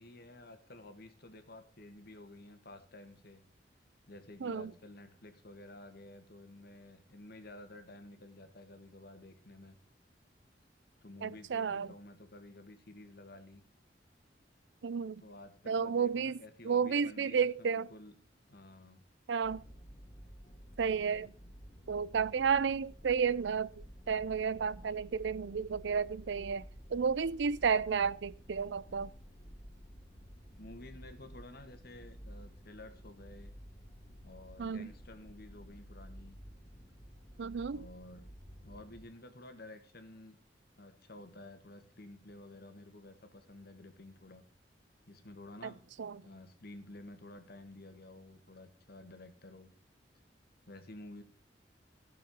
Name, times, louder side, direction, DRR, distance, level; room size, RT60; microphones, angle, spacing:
voice 1, 0.0-3.4 4.1-9.8 11.0-13.6 15.2-18.2 18.5-19.0 30.6-33.5 34.2-36.4 37.7-38.3 38.6-40.4 40.8-44.4 45.1-45.8 46.2-49.7 50.7-51.2, left 1 dB, 60° left, 1.8 m, -52 dB
voice 2, 11.2-11.9 14.8-15.2 15.7-16.4 16.7-17.9 19.3-19.6 20.8-21.3 21.9-23.7 24.1-26.6 26.9-29.1 34.6-34.9 37.4-37.8 46.0-46.1, right 6 dB, 75° right, 0.5 m, -32 dB
sound 1, 19.4-39.0, equal, 30° left, 2.5 m, -52 dB
16.0 x 7.0 x 5.4 m
head